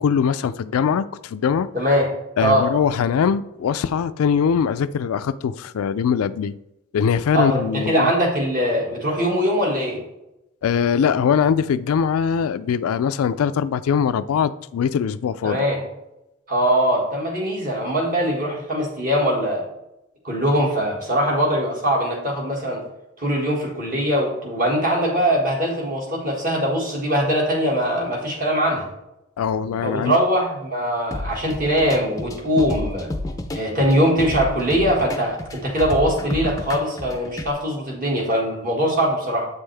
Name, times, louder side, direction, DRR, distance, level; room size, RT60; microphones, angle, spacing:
voice 1, 0.0-1.7 2.4-6.6 6.9-8.1 10.6-15.6 29.4-30.2, left 7 dB, 80° left, 0.3 m, -21 dB
voice 2, 1.7-2.1 2.4-2.7 7.3-10.0 15.4-15.8 16.5-19.6 20.2-22.8 23.2-28.9 29.8-33.1 33.5-39.5, equal, 40° right, 1.8 m, -21 dB
sound 1, 31.1-37.5, left 2 dB, 15° left, 0.5 m, -30 dB
8.0 x 5.4 x 3.4 m
head